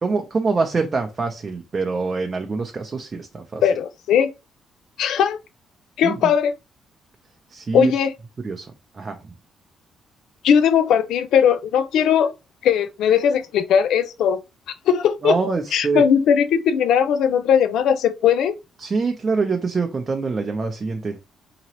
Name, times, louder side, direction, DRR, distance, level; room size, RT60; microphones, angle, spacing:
voice 1, 0.0-3.6 6.0-6.3 7.5-7.9 8.4-8.7 8.9-9.2 15.2-16.0 18.8-21.2, right 4 dB, 35° right, 0.6 m, -24 dB
voice 2, 3.6-4.3 5.0-5.4 6.0-6.5 7.7-8.1 10.4-12.3 12.6-14.4 14.9-15.4 15.7-18.5, left 8 dB, 80° left, 0.5 m, -18 dB
3.8 x 3.0 x 2.9 m
cardioid pair, 90°, 0 cm